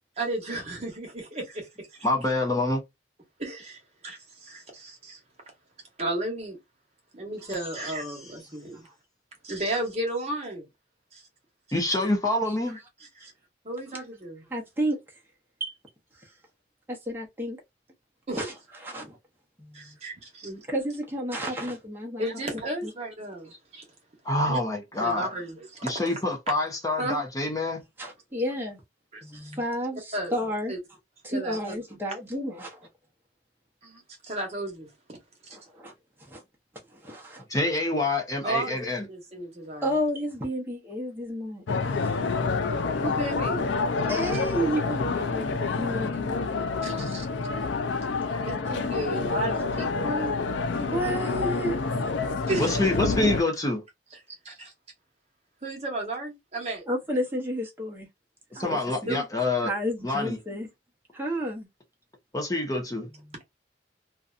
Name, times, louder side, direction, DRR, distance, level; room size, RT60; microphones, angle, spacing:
voice 1, 0.2-2.1 3.4-5.2 6.0-6.6 7.1-8.9 9.4-10.6 11.1-11.2 13.2-13.3 13.6-14.4 18.3-18.5 19.7-20.6 22.2-23.9 24.4-24.6 24.9-25.9 27.0-27.2 29.1-29.2 30.1-30.3 30.7-30.8 31.3-31.7 33.8-34.9 38.4-39.9 43.0-43.7 46.8-47.2 48.4-50.4 52.5-52.9 54.4-54.7 55.6-56.9 58.5-58.7 59.1-59.2, right 1 dB, 35° right, 1.0 m, -34 dB
voice 2, 2.0-2.8 11.7-12.8 24.2-25.3 25.8-27.8 37.5-39.0 52.6-53.8 58.6-59.7 60.0-60.4 62.3-63.1, left 2 dB, 20° left, 0.6 m, -26 dB
voice 3, 14.5-15.0 15.6-15.7 16.2-16.3 16.9-17.6 18.4-18.5 18.8-19.2 19.6-20.0 20.7-22.2 22.8-22.9 28.0-28.8 29.2-30.7 31.2-32.9 35.5-35.9 36.2-36.4 36.9-37.5 39.8-41.6 42.0-42.2 44.1-46.4 50.8-51.8 56.9-58.1 58.5-59.2 59.6-60.7 61.1-61.7 63.2-63.4, equal, 10° right, 0.8 m, -31 dB
sound 1, 41.7-53.4, left 4 dB, 85° left, 0.4 m, -28 dB
2.6 x 2.3 x 2.4 m
head